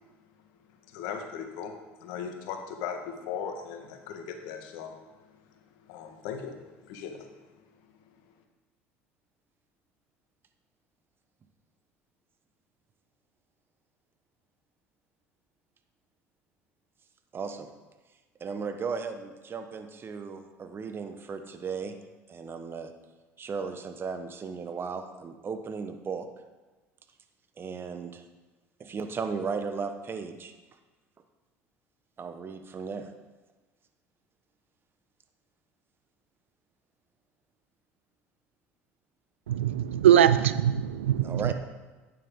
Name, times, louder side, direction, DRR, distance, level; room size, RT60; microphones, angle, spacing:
voice 1, 0.9-5.3 5.8-7.3, left 7 dB, 70° left, 1.5 m, -38 dB
voice 2, 17.3-17.7 18.4-21.9 22.3-22.9 23.4-26.3 27.6-28.2 28.8-30.5 32.2-33.1 41.2-41.5, right 5 dB, 35° right, 1.2 m, -35 dB
voice 3, 39.5-41.5, right 10 dB, 90° right, 0.4 m, -22 dB
11.5 x 9.2 x 3.8 m
hypercardioid pair, 75°, 7 cm